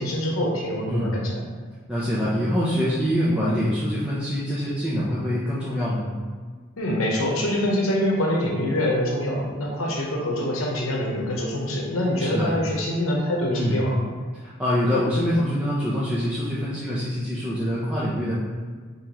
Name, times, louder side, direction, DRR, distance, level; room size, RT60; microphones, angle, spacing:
voice 1, 0.0-1.4 6.8-14.1, left 1 dB, 80° left, -1 dB, 1.0 m, -25 dB
voice 2, 1.9-6.1 12.3-12.5 13.5-13.8 14.4-18.3, equal, 5° right, -9 dB, 0.6 m, -24 dB
5.7 x 3.0 x 3.0 m, 1.5 s
head